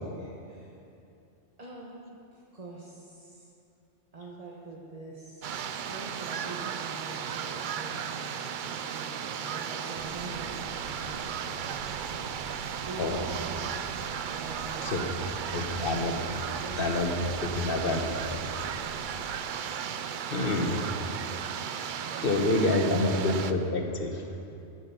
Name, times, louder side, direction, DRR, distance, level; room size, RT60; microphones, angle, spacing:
voice 1, 0.2-0.7 1.6-3.5 4.1-13.8 14.3-15.2 15.7-15.9 16.5-17.0 17.4-17.8 18.1-18.6 22.0-23.0, right 2 dB, 30° right, -4 dB, 1.3 m, -45 dB
sound 1, 5.4-23.5, right 8 dB, 55° right, 0.6 m, -35 dB
sound 2, 9.9-19.4, right 4 dB, 85° right, 1.3 m, -46 dB
voice 2, 15.5-16.1 16.8-17.3 17.6-18.0 20.3-20.8 22.2-24.2, left 2 dB, 50° left, 4 dB, 1.3 m, -27 dB
13.5 x 8.8 x 5.9 m, 2.7 s
omnidirectional pair, 1.2 m